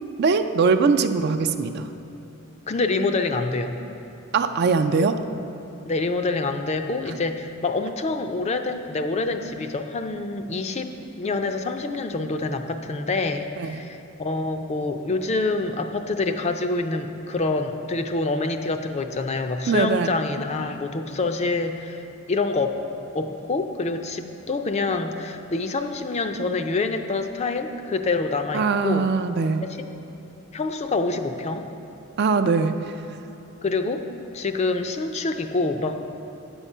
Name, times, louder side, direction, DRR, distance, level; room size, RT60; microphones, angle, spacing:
voice 1, 0.2-1.9 4.3-5.2 13.6-13.8 19.7-20.1 28.5-29.6 32.2-32.7, right 4 dB, 50° right, 9 dB, 0.4 m, -21 dB
voice 2, 2.7-3.8 5.9-22.0 22.3-22.8 23.1-29.1 29.6-29.9 30.5-31.7 33.6-34.0 34.3-36.1, left 3 dB, 30° left, 7 dB, 0.4 m, -26 dB
9.1 x 7.1 x 5.5 m, 2.8 s
head